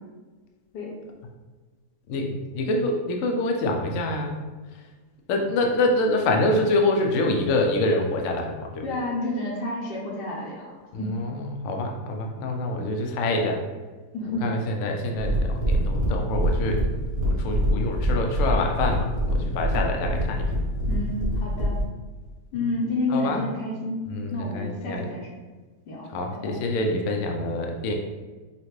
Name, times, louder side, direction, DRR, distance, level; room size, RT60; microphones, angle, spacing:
voice 1, 2.1-4.4 5.3-8.9 10.9-13.6 14.4-16.8 17.3-20.5 23.1-23.4 24.1-25.1 26.1-27.9, left 2 dB, 65° left, 2 dB, 0.9 m, -26 dB
voice 2, 8.8-10.7 11.0-11.1 14.1-14.4 20.9-21.8 22.5-24.0 24.3-25.3 25.9-26.6, left 2 dB, 80° left, -3 dB, 1.4 m, -30 dB
sound 1, 15.2-21.9, equal, 25° right, 1.0 m, -24 dB
5.7 x 2.5 x 3.1 m, 1.3 s
omnidirectional pair, 1.8 m